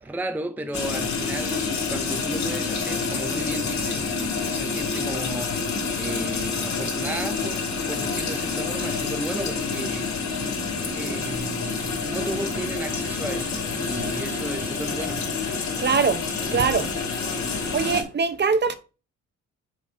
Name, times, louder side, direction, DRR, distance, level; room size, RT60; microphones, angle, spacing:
voice 1, 0.0-10.1 10.9-15.3, right 1 dB, 5° right, 0.6 m, -34 dB
sound 1, 0.7-18.0, left 4 dB, 65° left, 2.9 m, -28 dB
voice 2, 15.8-16.2 16.5-16.9 17.7-18.7, right 5 dB, 35° right, 0.9 m, -22 dB
7.2 x 4.1 x 4.3 m
cardioid pair, 90°, 30 cm